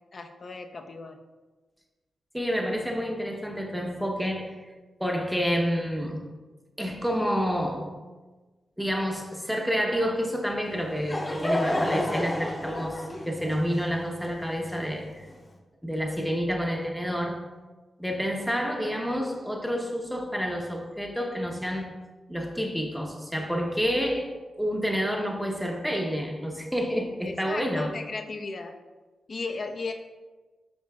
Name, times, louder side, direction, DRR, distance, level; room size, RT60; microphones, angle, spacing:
voice 1, 0.1-1.2 27.2-28.7 29.3-29.9, left 3 dB, 45° left, 5 dB, 0.6 m, -35 dB
voice 2, 2.3-4.6 5.0-6.2 6.8-8.0 8.8-15.3 15.8-17.4 18.0-21.9 22.3-24.3 24.6-27.9, equal, ahead, 1 dB, 0.9 m, -29 dB
Laughter / Crowd, 10.7-15.3, left 1 dB, 20° left, 0.9 m, -31 dB
9.6 x 5.2 x 2.3 m, 1.3 s
wide cardioid pair, 125°, 0 cm